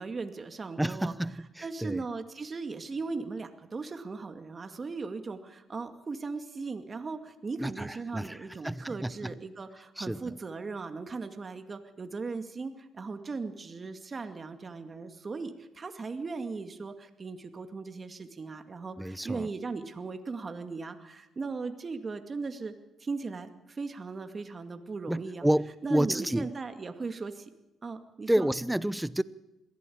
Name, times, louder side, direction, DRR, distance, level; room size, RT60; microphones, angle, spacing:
voice 1, 0.0-1.1 1.6-22.7 23.0-25.5 25.8-27.5 27.8-28.5, right 4 dB, 35° right, 7 dB, 2.2 m, -38 dB
voice 2, 0.8-2.0 7.6-8.4 8.6-9.3 10.0-10.2 19.0-19.5 25.1-26.5 28.3-29.2, right 1 dB, 5° right, 17 dB, 0.8 m, -29 dB
22.0 x 15.5 x 8.7 m, 0.96 s
cardioid pair, 90°, 0 cm